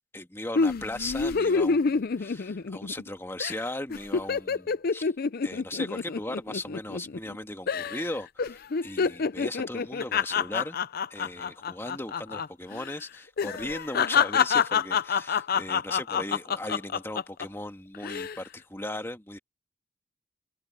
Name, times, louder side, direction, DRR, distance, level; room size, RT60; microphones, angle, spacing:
voice 1, 0.1-5.1 5.4-10.8 11.1-19.4, left 1 dB, 10° left, 1.7 m, -37 dB
sound 1, 0.6-3.1 3.4-3.6 3.9-7.4 7.7-8.1 8.4-12.5 12.7-12.9 13.4-17.5 17.9-18.4, left 5 dB, 50° left, 0.5 m, -27 dB
head